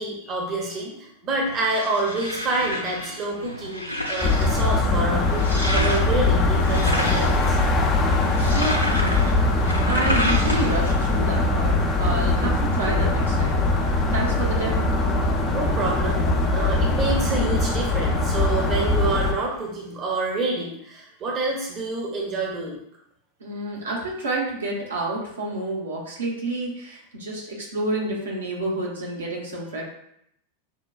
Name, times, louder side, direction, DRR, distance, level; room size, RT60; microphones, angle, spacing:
voice 1, 0.0-7.6 15.5-22.8, right 2 dB, 30° right, -2 dB, 0.8 m, -28 dB
sound 1, 1.3-11.0, left 1 dB, 85° left, 0.5 m, -31 dB
sound 2, 4.2-19.3, left 2 dB, 30° left, 0.5 m, -21 dB
voice 2, 8.4-9.4 9.9-14.7 23.4-29.8, right 2 dB, 70° right, -3 dB, 0.9 m, -29 dB
5.5 x 2.2 x 2.4 m, 0.74 s
figure-of-eight pair, 90°, 0 cm